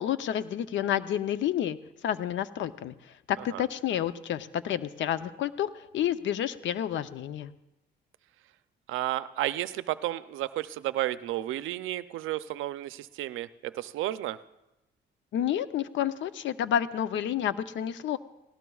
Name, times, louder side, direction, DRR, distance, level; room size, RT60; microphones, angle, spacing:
voice 1, 0.0-1.8 2.0-2.9 3.3-7.5 15.3-18.2, left 10 dB, 70° left, 13 dB, 0.6 m, -29 dB
voice 2, 8.9-14.4, right 14 dB, 85° right, 14 dB, 0.5 m, -32 dB
18.0 x 17.5 x 2.4 m, 0.95 s
cardioid pair, 90°, 20 cm